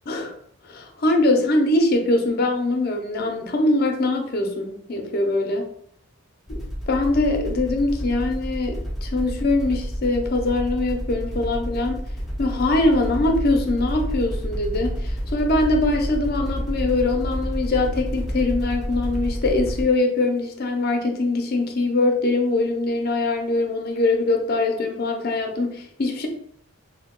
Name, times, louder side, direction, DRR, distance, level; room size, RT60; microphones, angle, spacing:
voice 1, 0.1-0.4 0.6-5.7 6.5-12.0 12.4-26.3, left 2 dB, 45° left, 4 dB, 0.5 m, -22 dB
sound 1, 6.5-19.8, equal, ahead, 0.5 m, -29 dB
3.0 x 2.2 x 3.6 m, 0.65 s
head